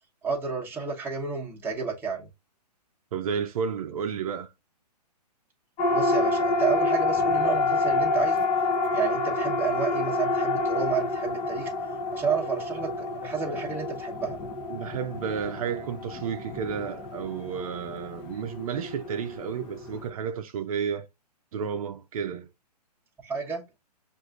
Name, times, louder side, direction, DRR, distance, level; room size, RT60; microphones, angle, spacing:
voice 1, 0.2-2.3 5.9-8.4 8.9-11.7 12.1-14.4 23.2-23.6, right 6 dB, 10° right, 1.0 m, -31 dB
voice 2, 3.1-4.5 14.7-21.1 21.5-22.5, right 7 dB, 55° right, 0.6 m, -32 dB
Siren, 5.8-20.1, left 2 dB, 25° left, 0.7 m, -28 dB
6.4 x 2.6 x 2.4 m
hypercardioid pair, 130°, 21 cm